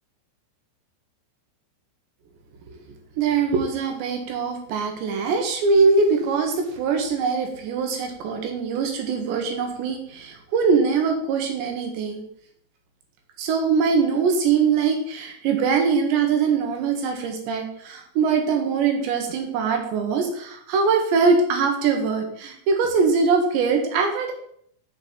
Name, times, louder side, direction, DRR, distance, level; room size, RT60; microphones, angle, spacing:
voice 1, 3.2-12.2 13.4-24.3, right 5 dB, 65° right, 4 dB, 3.5 m, -22 dB
7.8 x 6.6 x 7.3 m, 0.66 s
omnidirectional pair, 6.0 m